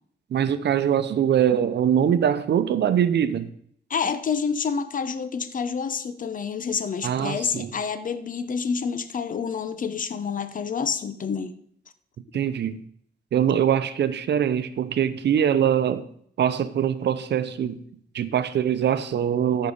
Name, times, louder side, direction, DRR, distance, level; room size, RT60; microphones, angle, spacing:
voice 1, 0.3-3.5 7.0-7.7 12.3-12.8 13.3-16.1 16.4-17.8 18.1-19.7, right 9 dB, 85° right, 0.7 m, -23 dB
voice 2, 3.9-11.5, left 6 dB, 50° left, 0.8 m, -28 dB
13.5 x 5.5 x 5.4 m
wide cardioid pair, 115°, 17 cm